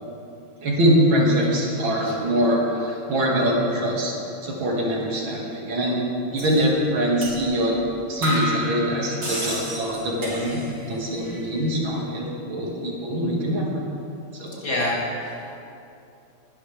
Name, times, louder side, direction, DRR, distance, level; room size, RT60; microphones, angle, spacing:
voice 1, 0.6-4.1 4.4-6.0 6.3-7.8 8.1-10.6 10.9-13.8 14.3-14.6, equal, 90° right, -2 dB, 2.9 m, -23 dB
sound 1, 6.4-6.6 7.2-7.4 7.7-7.8 8.2-10.9 11.1-11.7, equal, 65° right, 4.2 m, -30 dB
voice 2, 14.6-15.5, left 1 dB, 45° left, -5 dB, 2.9 m, -27 dB
20.0 x 11.0 x 3.4 m, 2.7 s
omnidirectional pair, 2.1 m